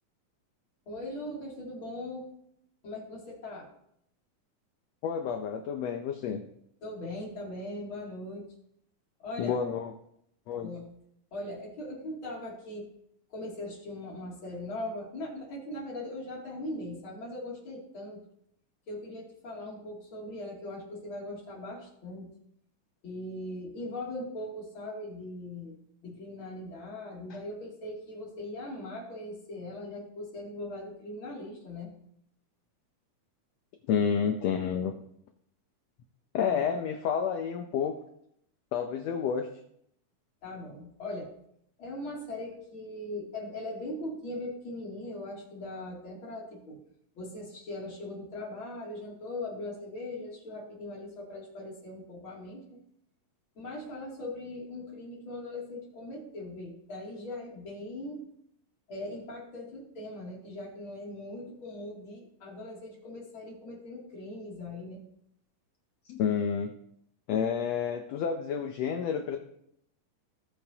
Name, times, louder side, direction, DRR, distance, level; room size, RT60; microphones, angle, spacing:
voice 1, 0.9-2.3 2.8-3.7 6.8-8.4 9.2-9.6 10.6-10.9 11.3-12.9 13.3-18.2 18.9-22.3 23.0-31.9 36.4-36.6 40.4-41.3 41.8-46.8 47.1-52.8 53.6-58.2 58.9-65.0, left 1 dB, 40° left, -3 dB, 3.2 m, -40 dB
voice 2, 5.0-6.4 9.4-9.9 10.5-10.7 33.9-34.9 36.3-38.0 38.7-39.5 66.1-66.7 67.3-69.4, left 7 dB, 80° left, 5 dB, 1.5 m, -29 dB
18.5 x 7.0 x 2.8 m, 0.73 s
omnidirectional pair, 3.8 m